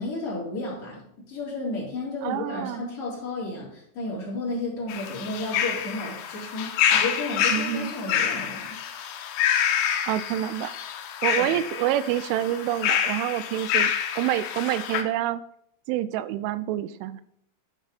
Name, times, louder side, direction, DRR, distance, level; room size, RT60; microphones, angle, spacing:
voice 1, 0.0-8.8 11.3-11.5, left 2 dB, 35° left, -6 dB, 3.9 m, -32 dB
voice 2, 2.2-2.8 7.5-7.9 10.1-10.7 11.2-15.4 15.9-17.2, right 13 dB, 90° right, 15 dB, 3.0 m, -27 dB
sound 1, 4.9-15.0, left 9 dB, 85° left, 3.0 m, -27 dB
12.5 x 4.9 x 4.1 m, 0.70 s
omnidirectional pair, 5.4 m